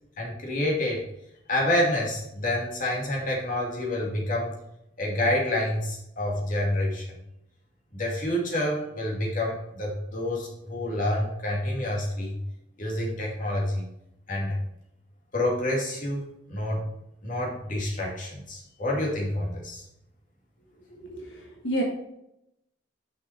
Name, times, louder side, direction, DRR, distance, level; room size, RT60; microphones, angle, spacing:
voice 1, 0.2-1.0 1.5-4.5 5.0-7.0 7.9-12.4 12.8-13.8 14.3-14.6 15.3-16.8 17.2-19.8, left 1 dB, 45° left, -2 dB, 2.3 m, -28 dB
voice 2, 20.9-21.8, right 1 dB, 85° left, -1 dB, 1.5 m, -31 dB
6.5 x 5.7 x 4.4 m, 0.82 s
head